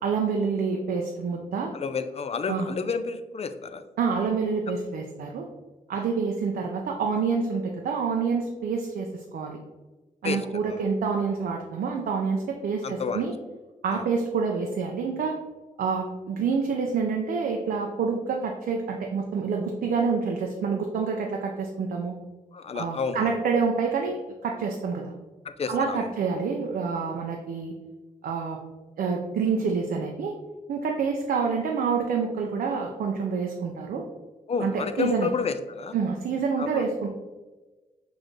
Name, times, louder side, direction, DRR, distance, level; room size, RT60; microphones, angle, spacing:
voice 1, 0.0-1.7 2.5-2.7 4.0-5.5 5.9-9.6 10.2-13.3 13.8-15.4 15.8-22.1 22.7-24.2 24.4-25.1 25.7-27.7 28.2-28.6 29.0-30.3 30.7-34.0 34.6-35.3 35.9-37.1, right 5 dB, 90° right, 2 dB, 0.5 m, -27 dB
voice 2, 1.7-3.8 10.2-10.4 10.7-10.8 12.8-13.3 13.9-14.0 22.5-23.3 25.4-26.1 34.5-36.0 36.6-36.9, left 5 dB, 45° left, 10 dB, 0.4 m, -30 dB
6.1 x 2.5 x 3.1 m, 1.2 s
cardioid pair, 90°, 15 cm